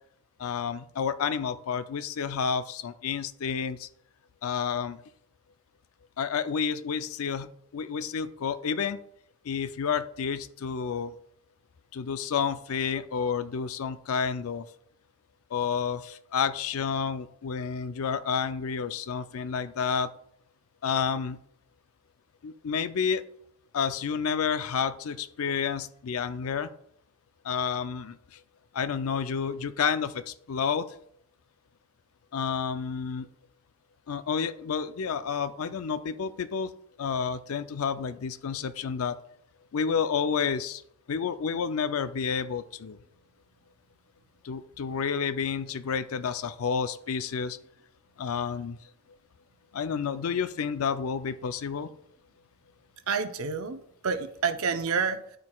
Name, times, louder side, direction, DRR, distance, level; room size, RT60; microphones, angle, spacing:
voice 1, 0.4-3.9 4.4-5.0 6.2-9.0 9.4-11.2 11.9-14.7 15.5-20.1 20.8-21.4 22.4-23.2 23.7-26.7 27.4-28.4 28.7-30.9 32.3-33.3 34.1-36.7 37.0-39.2 39.7-40.8 41.1-43.0 44.4-47.6 48.2-48.8 49.7-51.9, left 6 dB, 90° left, 13 dB, 0.4 m, -30 dB
voice 2, 53.1-55.4, right 5 dB, 85° right, 9 dB, 0.6 m, -29 dB
12.0 x 4.6 x 2.3 m, 0.70 s
head